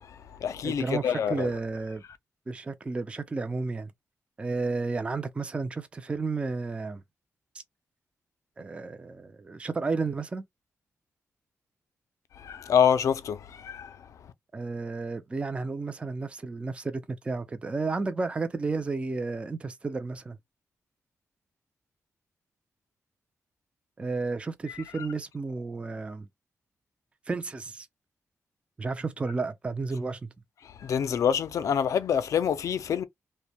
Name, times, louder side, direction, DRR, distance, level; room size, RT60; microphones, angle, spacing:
voice 1, 0.0-1.5 12.3-14.1 24.7-25.1 30.6-33.0, left 8 dB, 65° left, 0.4 m, -27 dB
voice 2, 0.6-2.0 2.5-3.9 4.4-7.0 7.5-7.6 8.6-10.4 14.5-20.4 24.0-26.3 27.3-27.9 28.8-30.3, right 3 dB, 20° right, 0.3 m, -32 dB
2.5 x 2.1 x 2.7 m
wide cardioid pair, 115°, 6 cm